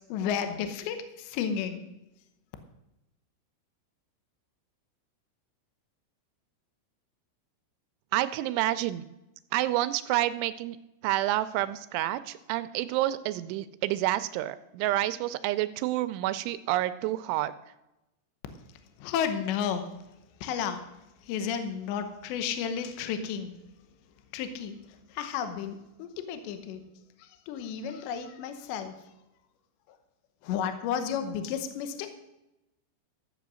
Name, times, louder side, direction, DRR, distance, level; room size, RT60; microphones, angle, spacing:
voice 1, 0.1-1.8 19.0-19.8 20.4-20.8 21.2-23.5 24.3-24.8 25.1-26.8 27.2-28.9 30.4-32.1, left 8 dB, 75° left, 8 dB, 3.0 m, -32 dB
voice 2, 8.1-9.0 9.5-10.8 11.0-17.5, right 15 dB, 85° right, 13 dB, 2.8 m, -29 dB
14.0 x 8.2 x 6.2 m, 0.94 s
omnidirectional pair, 5.7 m